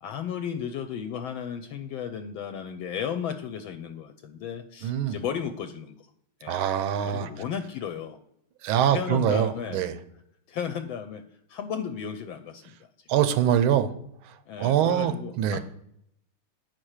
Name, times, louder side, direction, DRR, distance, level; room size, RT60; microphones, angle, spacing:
voice 1, 0.0-6.1 6.4-6.6 7.0-8.2 8.9-9.8 10.5-11.2 11.5-12.6 14.5-15.6, left 8 dB, 80° left, 8 dB, 1.3 m, -34 dB
voice 2, 4.8-5.2 6.5-7.3 8.6-10.0 13.1-13.9 14.6-15.6, right 10 dB, 90° right, 12 dB, 1.5 m, -24 dB
8.9 x 4.5 x 6.4 m, 0.74 s
omnidirectional pair, 2.3 m